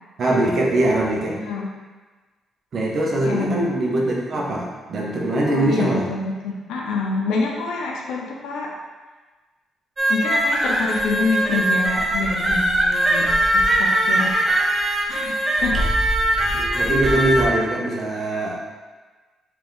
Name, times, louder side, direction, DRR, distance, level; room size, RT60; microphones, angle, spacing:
voice 1, 0.2-1.4 2.7-6.1 16.5-18.6, right 1 dB, 50° right, -3 dB, 0.9 m, -22 dB
voice 2, 1.3-1.7 3.2-3.7 5.5-8.7 10.1-14.5 15.1-15.9, left 3 dB, 85° left, -1 dB, 0.6 m, -26 dB
sound 1, 10.0-17.4, right 1 dB, 20° right, 0.6 m, -21 dB
3.4 x 2.9 x 3.9 m, 1.3 s
cardioid pair, 90°, 0 cm